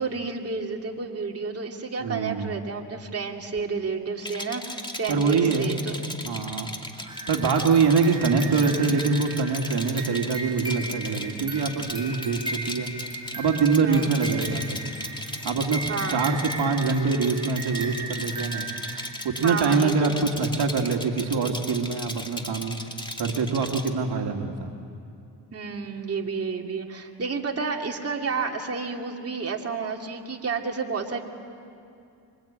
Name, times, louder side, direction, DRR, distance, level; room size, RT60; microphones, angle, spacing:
voice 1, 0.0-6.1 13.8-14.2 15.9-16.9 19.4-20.3 25.5-31.2, right 5 dB, 35° right, 1 dB, 2.5 m, -31 dB
voice 2, 2.0-2.5 5.1-5.7 6.2-6.7 7.0-12.9 13.4-14.8 15.4-18.7 19.2-22.8 23.2-24.7, right 4 dB, 65° right, 3 dB, 2.4 m, -24 dB
Rattle, 4.2-23.9, left 1 dB, 10° left, 2.4 m, -37 dB
sound 1, 7.1-19.7, right 2 dB, 10° right, 4.0 m, -37 dB
26.5 x 24.5 x 8.9 m, 2.6 s
cardioid pair, 85°, 43 cm